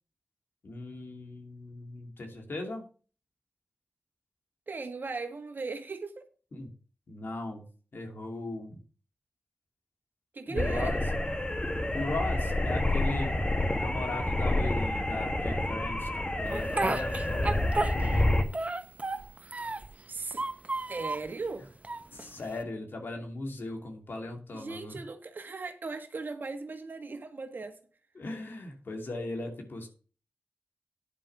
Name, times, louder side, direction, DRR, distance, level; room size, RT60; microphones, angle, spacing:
voice 1, 0.6-2.8 6.5-6.7 7.1-7.6 7.9-8.8 10.5-11.0 11.9-13.4 13.7-17.7 22.1-25.0 28.2-29.9, left 2 dB, 75° left, 2.6 m, -38 dB
voice 2, 4.7-6.3 10.3-11.0 20.1-20.4 20.9-21.7 24.5-27.8, right 3 dB, 65° right, 1.7 m, -38 dB
sound 1, 10.6-18.4, left 1 dB, 30° left, 1.6 m, -28 dB
Speech, 16.5-18.2 18.5-19.9 20.3-21.3 21.8-22.6, right 3 dB, 40° right, 1.0 m, -33 dB
10.0 x 5.2 x 5.9 m
cardioid pair, 45°, 4 cm